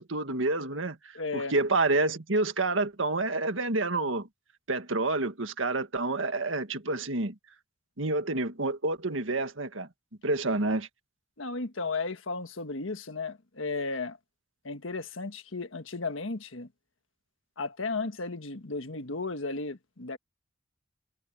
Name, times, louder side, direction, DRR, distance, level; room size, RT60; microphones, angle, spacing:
voice 1, 0.0-4.3 4.7-7.4 8.0-9.9 10.2-10.9, right 2 dB, 75° right, 1.8 m, -28 dB
voice 2, 1.1-1.5 11.4-14.2 14.6-16.7 17.6-20.2, left 3 dB, 85° left, 1.6 m, -34 dB
head